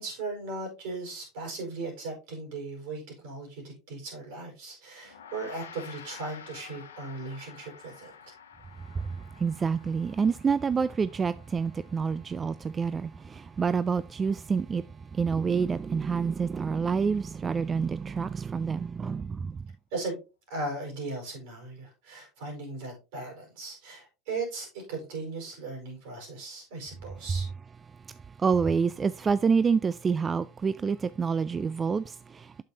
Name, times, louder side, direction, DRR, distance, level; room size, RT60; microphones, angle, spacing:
voice 1, 0.0-8.1 19.9-20.2 20.5-27.5, right 3 dB, 70° right, 4.7 m, -37 dB
Gong, 5.0-14.6, left 7 dB, 85° left, 0.9 m, -51 dB
voice 2, 9.4-14.8 15.2-19.5 28.4-32.6, right 5 dB, 30° right, 0.3 m, -27 dB
8.2 x 6.8 x 2.8 m
hypercardioid pair, 75°, 0 cm